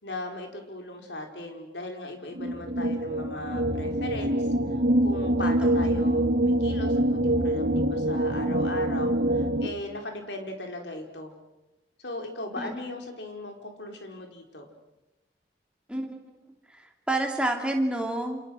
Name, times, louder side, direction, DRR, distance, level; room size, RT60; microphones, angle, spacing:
voice 1, 0.0-4.5 5.0-11.3 12.0-14.7, left 1 dB, 85° left, 3 dB, 4.4 m, -38 dB
sound 1, 2.3-9.7, right 1 dB, 70° right, 1.9 m, -25 dB
voice 2, 15.9-16.3 16.7-18.4, right 1 dB, 5° right, 2 dB, 3.0 m, -29 dB
29.0 x 28.0 x 6.4 m, 1.0 s
head